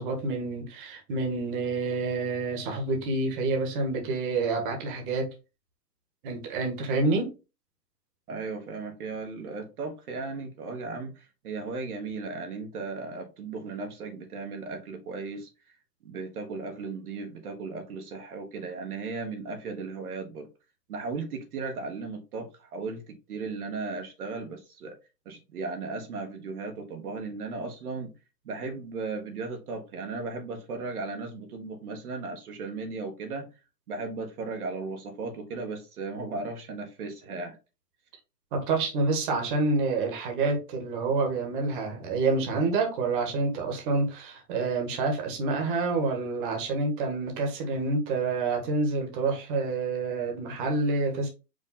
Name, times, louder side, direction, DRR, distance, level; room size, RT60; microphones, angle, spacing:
voice 1, 0.0-5.3 6.2-7.3 38.5-51.3, right 3 dB, 30° right, 1.3 m, -28 dB
voice 2, 8.3-15.5 16.0-20.5 20.9-25.0 25.2-28.1 28.4-33.5 33.9-37.6, right 3 dB, 65° right, 1.3 m, -36 dB
5.1 x 2.6 x 3.9 m
hypercardioid pair, 155°, 49 cm